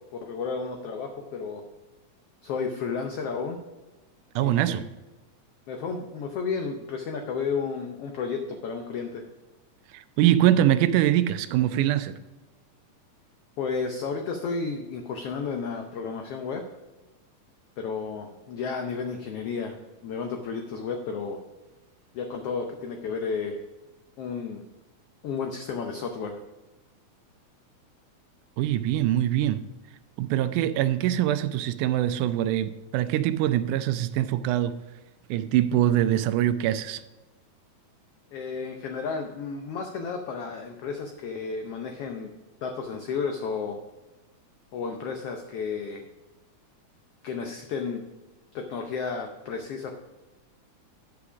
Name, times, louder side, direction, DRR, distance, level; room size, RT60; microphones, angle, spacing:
voice 1, 0.1-1.7 2.4-3.6 4.4-4.8 5.7-9.2 13.6-16.6 17.8-19.8 20.0-21.4 22.1-23.6 24.2-24.6 25.2-26.4 38.3-42.3 42.6-43.8 44.7-46.1 47.2-48.0 48.5-49.9, left 5 dB, 80° left, 1.3 m, -32 dB
voice 2, 4.4-4.9 9.9-12.2 28.6-29.6 30.2-34.7 35.3-37.0, right 12 dB, 85° right, 2.0 m, -23 dB
9.9 x 5.9 x 4.9 m
omnidirectional pair, 3.6 m